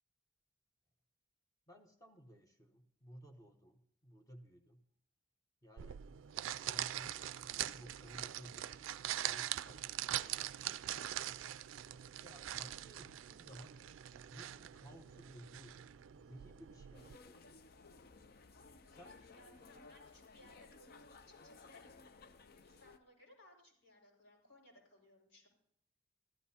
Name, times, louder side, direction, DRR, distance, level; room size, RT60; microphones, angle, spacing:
voice 1, 1.7-4.8 5.6-6.0 6.6-9.0 9.2-11.4 12.2-13.8 14.3-15.9 16.2-17.6 18.8-19.2, equal, 20° left, 3 dB, 1.0 m, -58 dB
sound 1, 5.8-17.2, right 12 dB, 85° right, 0.4 m, -43 dB
sound 2, 16.9-23.0, left 3 dB, 50° left, 0.6 m, -58 dB
voice 2, 19.1-21.8 22.6-25.5, left 1 dB, 85° left, -2 dB, 5.6 m, -64 dB
14.5 x 13.5 x 2.8 m, 0.69 s
head